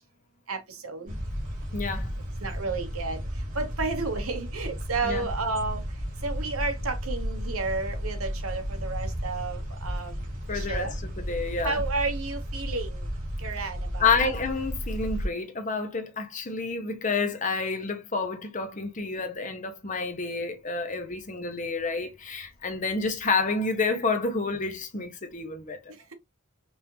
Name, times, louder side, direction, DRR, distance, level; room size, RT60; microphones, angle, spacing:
voice 1, 0.5-1.2 2.4-5.8 6.2-10.2 10.5-10.9 11.6-13.1 13.4-14.2, right 3 dB, 80° right, 1.2 m, -32 dB
sound 1, 1.1-15.3, equal, 40° right, 1.9 m, -33 dB
voice 2, 1.7-2.1 5.0-5.3 10.5-11.8 14.0-25.8, left 4 dB, 35° left, 0.9 m, -29 dB
5.3 x 2.7 x 3.0 m
head